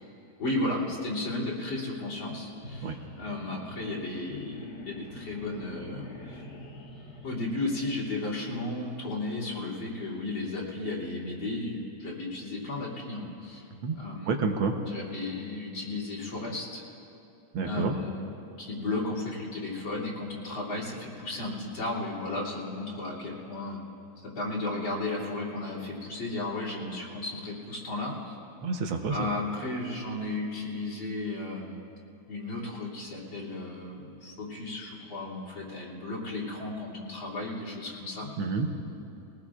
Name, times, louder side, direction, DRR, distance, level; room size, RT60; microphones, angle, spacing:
voice 1, 0.4-6.4 7.2-13.7 14.0-14.4 14.9-16.8 17.6-18.3 18.6-23.9 24.2-28.4 29.1-31.8 32.3-38.3, left 2 dB, 70° left, -6 dB, 3.7 m, -34 dB
sound 1, 2.5-8.7, left 1 dB, 50° left, 2.2 m, -45 dB
voice 2, 14.3-14.7 17.5-17.9 28.6-29.3 38.4-38.7, right 4 dB, 75° right, 4 dB, 1.8 m, -28 dB
23.0 x 19.0 x 2.4 m, 2.8 s
omnidirectional pair, 2.3 m